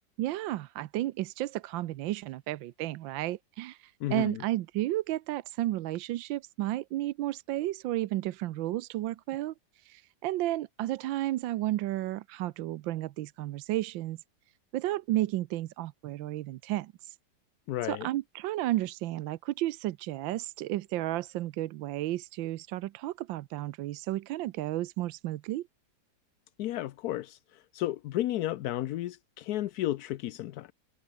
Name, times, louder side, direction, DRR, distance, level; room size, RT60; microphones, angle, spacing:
voice 1, 0.2-14.2 14.7-17.2 17.8-25.7, right 15 dB, 85° right, 1.4 m, -33 dB
voice 2, 4.0-4.4 17.7-18.1 26.6-27.4 27.7-30.7, left 14 dB, 70° left, 1.0 m, -32 dB
omnidirectional pair, 2.0 m